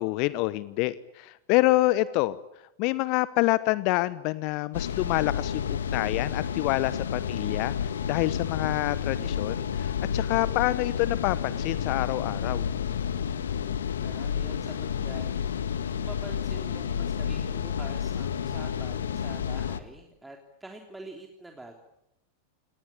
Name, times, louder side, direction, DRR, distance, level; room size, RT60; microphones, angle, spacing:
voice 1, 0.0-2.4 2.8-12.7, left 19 dB, 45° left, 17 dB, 1.0 m, -27 dB
sound 1, 4.7-19.8, left 8 dB, 65° left, 1.7 m, -30 dB
voice 2, 14.0-15.7 16.0-21.8, right 2 dB, 5° right, 2 dB, 3.4 m, -46 dB
29.0 x 20.0 x 8.9 m, 0.86 s
figure-of-eight pair, 90°, 0 cm